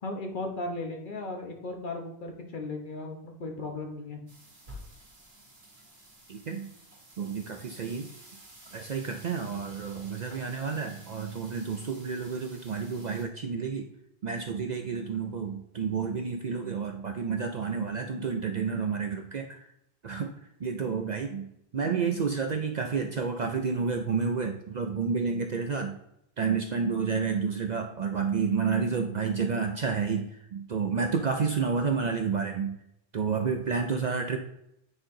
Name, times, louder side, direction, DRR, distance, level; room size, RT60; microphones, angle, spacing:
voice 1, 0.0-4.2, left 2 dB, 50° left, 3 dB, 1.2 m, -36 dB
sound 1, 4.3-13.2, right 1 dB, 70° right, 2.1 m, -51 dB
voice 2, 6.3-6.7 7.2-8.1 8.7-13.9 14.2-19.7 20.0-21.5 21.7-26.0 26.4-30.3 30.5-32.8 33.1-34.4, right 5 dB, 50° right, 5 dB, 0.6 m, -30 dB
8.6 x 4.3 x 3.8 m, 0.78 s
omnidirectional pair, 1.1 m